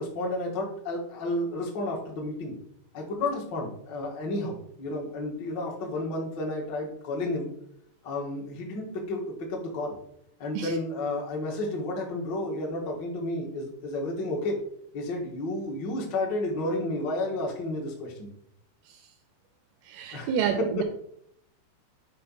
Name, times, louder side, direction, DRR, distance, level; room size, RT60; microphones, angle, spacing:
voice 1, 0.0-2.5 2.9-7.5 8.0-9.9 10.4-14.6 14.9-18.3 20.1-20.8, left 2 dB, 65° left, 1.0 m, -31 dB
voice 2, 19.9-20.8, right 8 dB, 80° right, 2.3 m, -28 dB
6.6 x 3.7 x 5.5 m
omnidirectional pair, 4.7 m